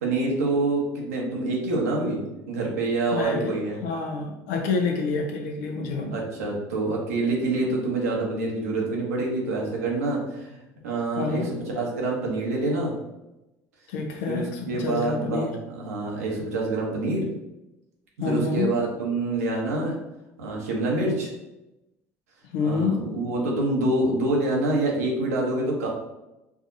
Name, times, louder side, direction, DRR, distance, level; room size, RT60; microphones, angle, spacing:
voice 1, 0.0-3.8 6.1-11.4 11.7-13.0 14.2-17.3 18.2-20.0 20.4-21.3 22.6-25.9, right 2 dB, 85° right, -2 dB, 0.9 m, -26 dB
voice 2, 3.1-3.6 3.8-6.2 11.2-11.5 13.9-15.6 18.2-18.7 22.5-23.0, left 4 dB, 75° left, 3 dB, 0.7 m, -27 dB
4.6 x 2.7 x 2.6 m, 0.96 s
hypercardioid pair, 65°, 8 cm